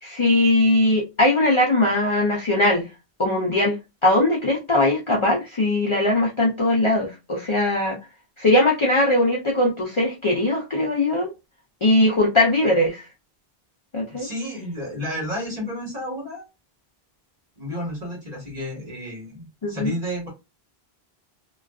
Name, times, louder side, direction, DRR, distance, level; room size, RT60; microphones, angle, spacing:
voice 1, 0.0-2.9 3.2-8.0 8.4-11.3 11.8-13.0 13.9-14.3 19.6-19.9, left 1 dB, 40° left, 0.4 m, -20 dB
voice 2, 14.1-16.4 17.6-20.3, equal, 40° right, 1.3 m, -31 dB
2.4 x 2.3 x 2.3 m
omnidirectional pair, 1.1 m